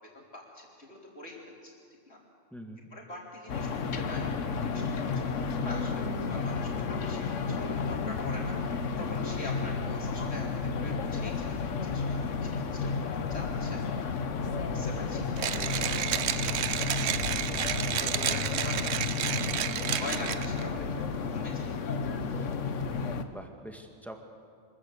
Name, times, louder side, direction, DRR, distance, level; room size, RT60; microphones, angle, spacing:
voice 1, 0.1-1.7 2.1-2.2 2.9-4.8 5.5-10.5 10.8-12.8 13.3-13.9 14.7-15.2 15.9-17.0 17.3-17.6 18.0-21.1 21.3-21.7, left 1 dB, 60° left, -2 dB, 3.9 m, -44 dB
voice 2, 2.5-2.9 15.4-16.4 23.3-24.2, equal, ahead, 3 dB, 1.7 m, -46 dB
sound 1, 3.5-23.2, left 5 dB, 85° left, 1.3 m, -32 dB
Mechanisms, 15.4-20.6, right 9 dB, 65° right, 0.9 m, -31 dB
25.0 x 14.0 x 8.4 m, 2.2 s
omnidirectional pair, 1.3 m